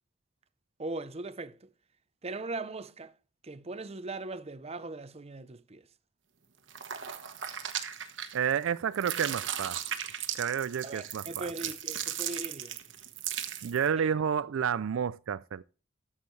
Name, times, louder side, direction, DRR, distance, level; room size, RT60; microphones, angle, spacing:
voice 1, 0.8-1.7 2.2-3.1 3.4-5.8 10.8-12.8 14.0-14.1, right 2 dB, 30° right, 0.7 m, -39 dB
sound 1, 6.7-8.6 8.9-13.9, right 10 dB, 65° right, 1.3 m, -37 dB
voice 2, 8.3-9.8 10.3-11.5 13.6-15.6, right 7 dB, 85° right, 0.4 m, -30 dB
13.5 x 7.4 x 3.2 m
head